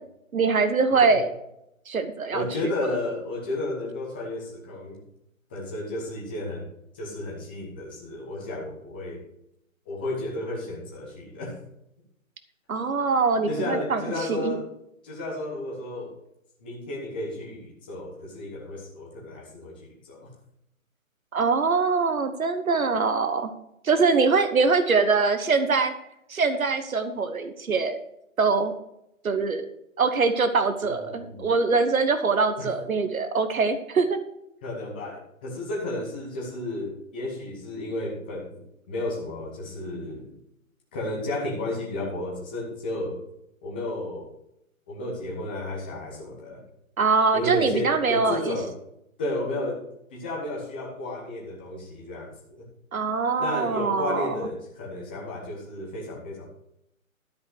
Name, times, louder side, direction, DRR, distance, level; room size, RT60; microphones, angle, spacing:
voice 1, 0.3-1.3 1.9-2.4 12.7-14.0 14.3-14.5 21.3-23.5 23.8-25.9 26.3-28.0 28.4-28.7 29.2-29.7 30.0-34.2 47.0-48.6 52.9-54.4, right 4 dB, 85° right, 9 dB, 1.3 m, -23 dB
voice 2, 2.3-5.0 5.5-6.7 6.9-9.2 9.9-11.6 13.5-14.7 15.0-16.1 16.6-20.3 30.8-31.5 32.6-32.7 34.6-38.6 38.9-40.3 40.9-43.2 43.6-44.3 44.9-46.6 47.3-48.7 49.2-49.8 50.1-52.7 53.4-56.5, left 1 dB, 5° left, -3 dB, 0.9 m, -32 dB
12.5 x 5.4 x 6.4 m, 0.80 s
hypercardioid pair, 170°, 41 cm